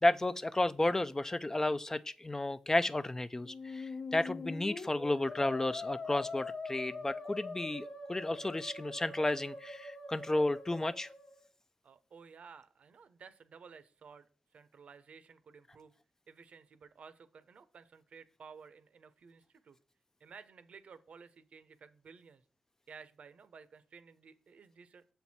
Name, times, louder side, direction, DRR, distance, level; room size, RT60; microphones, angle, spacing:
voice 1, 0.0-11.1, left 2 dB, 20° left, 0.4 m, -32 dB
Musical instrument, 3.4-11.4, left 3 dB, 60° left, 1.1 m, -43 dB
voice 2, 11.8-14.3 14.5-15.9 16.3-19.8 20.2-22.4 22.9-25.1, right 5 dB, 70° right, 0.6 m, -55 dB
6.8 x 4.5 x 4.2 m
cardioid pair, 55°, 2 cm